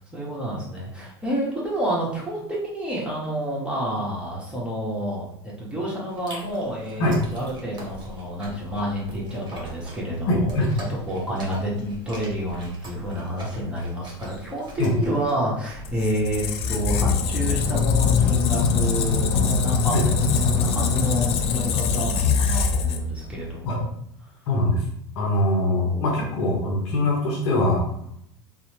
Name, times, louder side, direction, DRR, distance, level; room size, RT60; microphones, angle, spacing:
voice 1, 0.0-23.9 25.7-26.7, right 1 dB, 5° right, -5 dB, 1.1 m, -29 dB
Chewing mastication, 6.1-15.3, equal, 30° right, 1.1 m, -43 dB
voice 2, 10.3-10.7 14.8-14.9 19.9-20.0 23.7-23.8 24.5-24.8 25.2-28.1, left 1 dB, 70° left, 0 dB, 0.7 m, -22 dB
Squeak, 15.7-23.5, left 5 dB, 45° left, 0.4 m, -22 dB
2.9 x 2.0 x 2.9 m, 0.74 s
hypercardioid pair, 85°, 15 cm